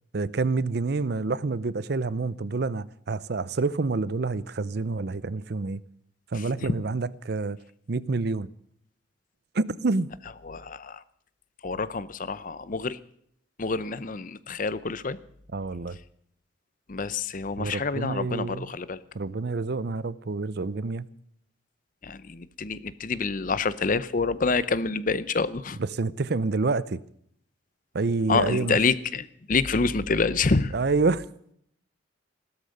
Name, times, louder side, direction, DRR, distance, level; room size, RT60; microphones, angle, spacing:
voice 1, 0.1-5.8 6.3-7.6 7.9-8.5 9.5-10.1 15.5-16.0 17.6-18.7 19.1-21.1 25.9-27.0 27.9-28.8 30.7-31.3, right 3 dB, 55° right, 0.6 m, -27 dB
voice 2, 6.3-6.7 10.4-11.0 11.6-13.0 13.6-15.2 16.9-19.0 22.0-25.8 28.3-30.7, left 4 dB, 45° left, 0.7 m, -27 dB
15.5 x 13.0 x 6.6 m
head